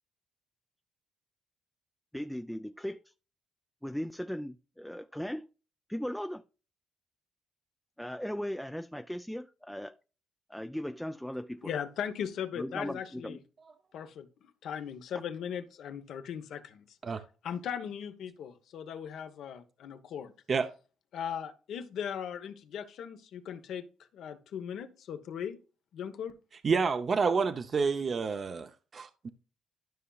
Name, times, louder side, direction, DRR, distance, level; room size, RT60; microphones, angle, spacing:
voice 1, 2.1-3.0 3.8-5.5 5.9-6.4 8.0-10.0 10.5-11.7 12.6-13.4, equal, 5° left, 0.4 m, -37 dB
voice 2, 11.6-13.4 13.9-14.3 14.6-16.8 17.4-20.3 21.1-23.8 24.1-25.6 25.9-26.3, left 8 dB, 75° left, 1.0 m, -38 dB
voice 3, 26.5-29.3, right 5 dB, 45° right, 0.7 m, -29 dB
12.5 x 5.6 x 2.4 m
cardioid pair, 90°, 0 cm